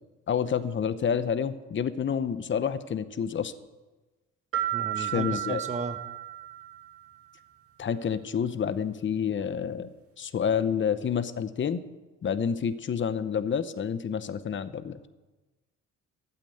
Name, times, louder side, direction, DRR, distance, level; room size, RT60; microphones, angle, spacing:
voice 1, 0.3-3.5 5.0-5.6 7.8-9.9 10.2-11.8 12.2-15.1, left 7 dB, 40° left, 13 dB, 0.8 m, -29 dB
sound 1, 4.5-7.2, right 14 dB, 50° right, 1.8 m, -33 dB
voice 2, 4.7-6.0, right 4 dB, 25° right, 9 dB, 0.9 m, -35 dB
12.5 x 8.7 x 7.7 m, 1.2 s
cardioid pair, 90°, 30 cm